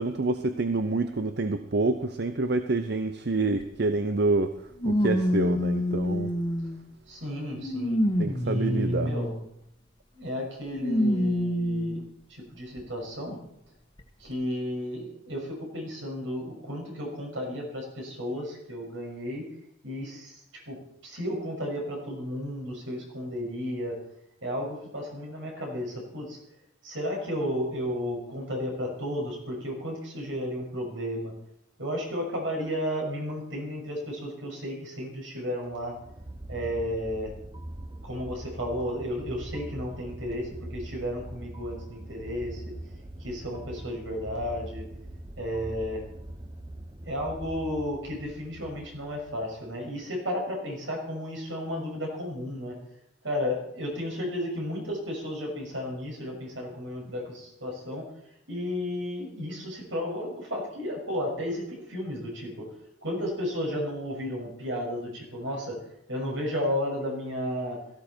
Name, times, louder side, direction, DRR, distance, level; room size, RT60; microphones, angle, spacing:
voice 1, 0.0-4.6 4.8-6.3 8.2-9.1, right 3 dB, 60° right, 0.7 m, -27 dB
sound 1, 3.6-3.7 4.8-6.9 7.4-9.5 10.6-12.1 12.8-12.9 14.0-14.1, left 1 dB, 25° left, 1.4 m, -27 dB
voice 2, 7.1-8.0 8.4-9.3 10.1-13.4 14.2-19.5 19.8-20.8 21.0-24.0 24.4-26.4 26.8-31.3 31.8-35.9 36.5-37.3 38.0-42.6 43.2-44.9 45.4-46.0 47.0-52.8 53.2-58.0 58.5-62.6 63.0-65.8 66.1-67.8, equal, 80° right, 6.5 m, -33 dB
sound 2, 35.7-49.8, right 1 dB, 25° right, 0.9 m, -42 dB
17.5 x 14.5 x 4.5 m
head